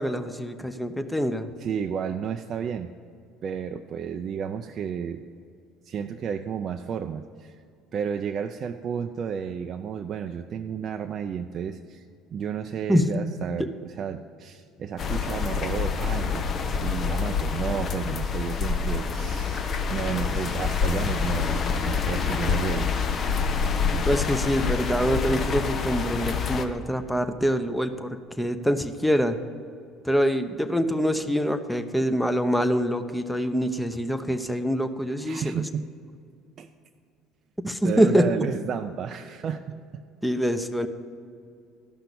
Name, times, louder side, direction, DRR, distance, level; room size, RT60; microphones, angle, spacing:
voice 1, 0.0-1.5 12.9-13.2 24.0-29.4 30.0-35.6 37.6-38.2 40.2-40.9, equal, 5° left, 8 dB, 0.8 m, -25 dB
voice 2, 1.6-3.0 3.4-5.2 5.8-7.6 7.9-13.7 14.0-16.5 16.8-22.9 35.3-35.8 36.6-36.7 37.8-39.8, right 7 dB, 50° right, 6 dB, 0.4 m, -32 dB
sound 1, 15.0-26.7, left 5 dB, 45° left, 0.9 m, -27 dB
13.0 x 5.8 x 6.9 m, 2.4 s
hypercardioid pair, 70°, 0 cm